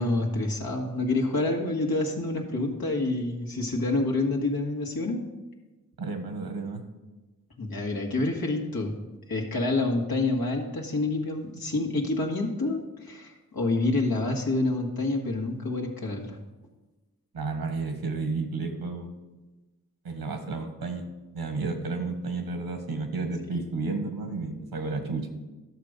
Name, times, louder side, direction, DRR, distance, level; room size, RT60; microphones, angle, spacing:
voice 1, 0.0-5.2 7.6-8.9 9.3-16.4 23.5-23.6, left 2 dB, 80° left, 1 dB, 1.7 m, -28 dB
voice 2, 6.0-6.8 17.3-19.1 20.0-21.0 21.3-25.3, right 3 dB, 85° right, 5 dB, 1.6 m, -32 dB
11.5 x 6.7 x 5.1 m, 1.1 s
cardioid pair, 45°, 36 cm